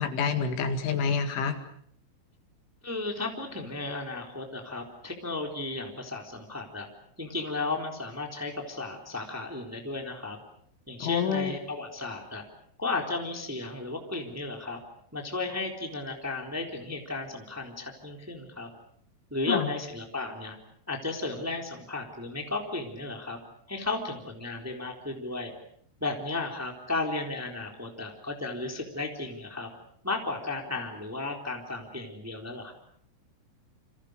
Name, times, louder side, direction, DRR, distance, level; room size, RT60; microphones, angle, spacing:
voice 1, 0.0-1.6 11.0-11.5 19.5-19.7, left 6 dB, 70° left, 8 dB, 4.3 m, -28 dB
voice 2, 2.8-6.9 7.2-10.4 10.9-12.4 12.8-14.8 15.1-18.7 19.3-20.6 20.9-23.4 23.7-25.5 26.0-29.7 30.0-32.7, left 3 dB, 5° right, 2 dB, 2.6 m, -34 dB
29.5 x 26.5 x 6.6 m, 0.63 s
omnidirectional pair, 6.0 m